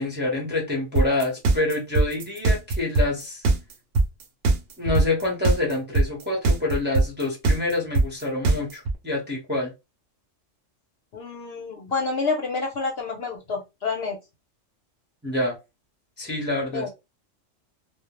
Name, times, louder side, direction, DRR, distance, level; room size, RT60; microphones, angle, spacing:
voice 1, 0.0-3.4 4.8-9.7 15.2-15.5 16.2-16.9, left 2 dB, 10° right, 0.6 m, -27 dB
sound 1, 1.0-8.9, right 2 dB, 65° right, 0.7 m, -20 dB
voice 2, 11.1-14.2 16.7-16.9, left 4 dB, 60° left, 0.8 m, -28 dB
2.2 x 2.0 x 2.9 m
omnidirectional pair, 1.3 m